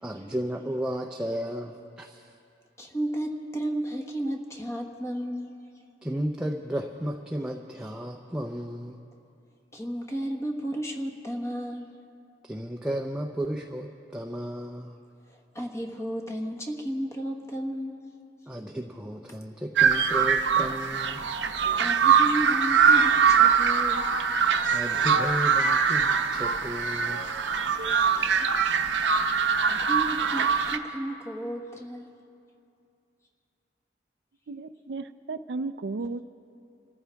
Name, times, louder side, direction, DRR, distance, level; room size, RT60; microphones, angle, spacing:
voice 1, 0.0-2.3 6.0-9.0 12.4-15.0 18.5-21.2 24.7-27.2, equal, 5° right, 1 dB, 0.5 m, -33 dB
voice 2, 2.8-5.5 9.7-11.9 15.3-17.9 21.8-24.1 28.1-28.3 28.6-28.7 29.7-32.1, right 1 dB, 15° left, 3 dB, 1.2 m, -33 dB
sound 1, 19.8-30.8, right 6 dB, 85° right, 0.9 m, -23 dB
voice 3, 34.5-36.2, right 3 dB, 70° right, 11 dB, 0.5 m, -34 dB
26.5 x 14.0 x 3.5 m, 2.5 s
head